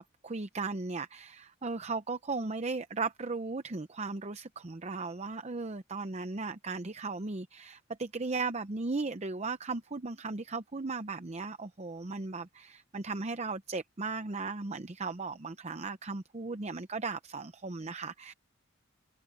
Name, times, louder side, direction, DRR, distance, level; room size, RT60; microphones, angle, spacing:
voice 1, 0.0-18.3, right 3 dB, 35° right, 0.7 m, -36 dB
open air
head